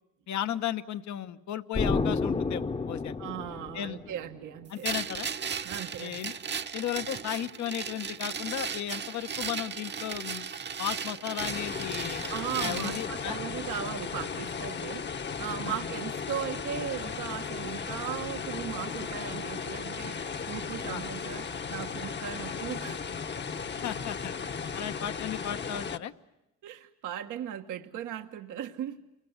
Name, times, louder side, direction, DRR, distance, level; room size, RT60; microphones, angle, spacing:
voice 1, 0.3-3.1 3.7-4.0 4.7-5.3 6.0-6.3 6.7-10.5 10.8-12.2 12.6-13.3 15.6-15.8 20.9-21.0 23.8-24.3 24.7-26.1, left 11 dB, 70° left, 10 dB, 1.2 m, -35 dB
Explosion, 1.8-4.4, left 4 dB, 20° left, 0.9 m, -30 dB
voice 2, 3.2-4.9 5.6-6.3 12.3-15.1 15.4-23.0 26.6-29.0, right 10 dB, 85° right, 5 dB, 1.5 m, -37 dB
sound 1, 4.8-13.1, right 6 dB, 35° right, 0.9 m, -36 dB
sound 2, 11.4-26.0, left 6 dB, 35° left, 1.1 m, -36 dB
28.5 x 23.5 x 8.2 m, 0.96 s
cardioid pair, 90°, 30 cm